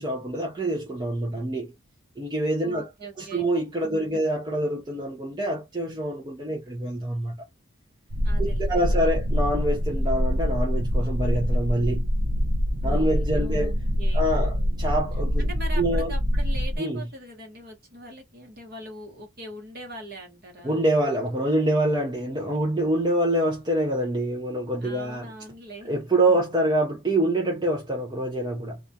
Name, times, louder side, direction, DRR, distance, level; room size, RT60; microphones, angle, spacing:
voice 1, 0.0-1.7 2.2-2.9 3.2-7.4 8.4-12.1 12.8-13.7 14.1-15.5 15.8-16.1 16.8-17.0 20.6-25.3 25.8-28.8, right 1 dB, 20° right, 0.4 m, -26 dB
voice 2, 2.6-3.5 3.9-4.2 8.2-9.3 12.8-14.8 15.4-20.8 24.8-26.5, right 1 dB, 45° right, 1.0 m, -42 dB
sound 1, 8.1-16.8, equal, 70° right, 0.6 m, -25 dB
2.3 x 2.2 x 2.6 m
head